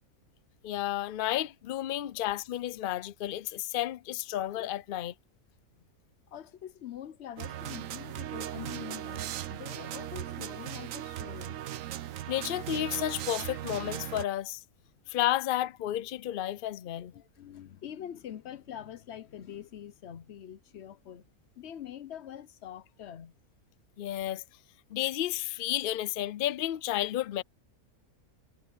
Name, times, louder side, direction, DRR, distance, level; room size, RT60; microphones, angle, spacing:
voice 1, 0.6-5.1 12.3-14.6 15.1-17.1 24.0-24.4 24.9-27.4, left 13 dB, 80° left, 0.4 m, -32 dB
voice 2, 6.3-11.6 17.1-21.3 21.6-23.3, left 10 dB, 55° left, 0.8 m, -44 dB
sound 1, 7.4-14.3, right 12 dB, 70° right, 1.0 m, -38 dB
omnidirectional pair, 1.6 m